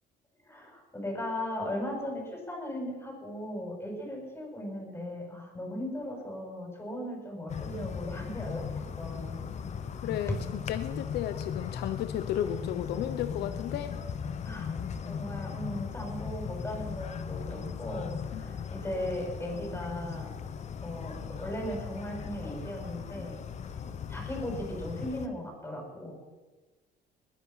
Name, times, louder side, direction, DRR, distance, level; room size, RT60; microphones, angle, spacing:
voice 1, 0.4-9.4 14.4-14.7 15.1-20.3 20.8-23.4 24.1-26.1, left 1 dB, 15° left, -1 dB, 7.1 m, -37 dB
sound 1, 7.5-25.3, left 7 dB, 40° left, 1.1 m, -38 dB
voice 2, 10.0-10.4 10.7-14.0 18.3-18.7, left 11 dB, 75° left, 10 dB, 0.9 m, -33 dB
21.0 x 11.0 x 5.8 m, 1.2 s
cardioid pair, 110°, 17 cm